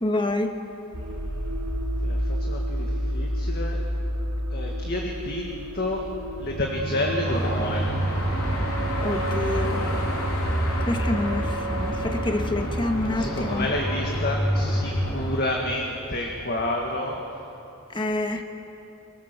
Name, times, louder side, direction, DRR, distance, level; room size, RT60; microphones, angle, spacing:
voice 1, 0.0-0.5 9.0-9.8 10.8-13.7 17.9-18.4, left 1 dB, 20° left, 6 dB, 1.3 m, -27 dB
sound 1, 0.9-13.5, right 1 dB, 85° right, 3.4 m, -30 dB
voice 2, 2.0-3.8 4.5-6.1 6.4-7.9 13.1-17.2, left 1 dB, 45° left, 0 dB, 1.9 m, -29 dB
Car passing by / Traffic noise roadway noise / Engine, 7.2-15.4, equal, 80° left, 3.4 m, -28 dB
25.0 x 23.5 x 6.8 m, 3.0 s
head